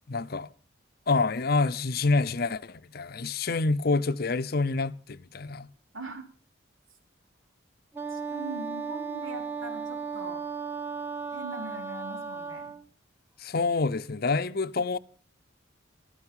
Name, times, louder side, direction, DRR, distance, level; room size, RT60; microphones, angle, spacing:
voice 1, 0.1-0.5 1.1-5.7 13.4-15.0, left 3 dB, 50° left, 0.7 m, -27 dB
voice 2, 5.9-6.3 8.1-10.4 11.3-12.8, right 2 dB, 85° right, 3.5 m, -41 dB
Wind instrument woodwind instrument, 7.9-12.8, right 5 dB, 10° right, 1.3 m, -35 dB
14.5 x 13.0 x 5.5 m
head